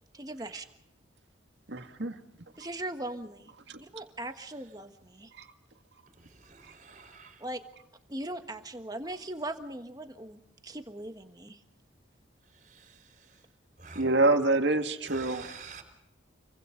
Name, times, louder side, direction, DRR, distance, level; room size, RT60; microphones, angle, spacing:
voice 1, 0.1-0.7 2.6-3.5 3.8-5.3 7.4-7.6 8.1-11.6, right 1 dB, 20° right, 1.4 m, -39 dB
voice 2, 1.7-2.2 3.7-3.8 5.4-5.5 14.0-15.4, right 2 dB, 70° right, 2.0 m, -26 dB
voice 3, 6.1-7.5 12.4-13.5 13.8-14.1 15.0-15.8, right 5 dB, 40° right, 4.6 m, -50 dB
29.0 x 24.0 x 3.9 m
head